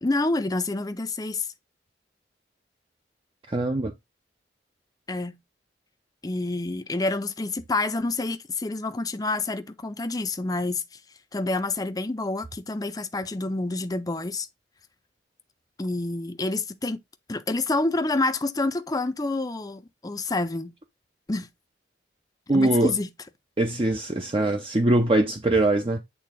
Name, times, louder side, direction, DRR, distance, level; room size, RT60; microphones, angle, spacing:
voice 1, 0.0-1.5 5.1-5.4 6.2-10.8 11.3-14.5 15.8-17.0 17.3-20.7 21.3-21.5 22.5-23.1, left 2 dB, 20° left, 0.6 m, -28 dB
voice 2, 3.5-3.9 22.5-22.9 23.6-26.0, right 2 dB, 30° right, 0.7 m, -22 dB
8.6 x 3.6 x 3.7 m
head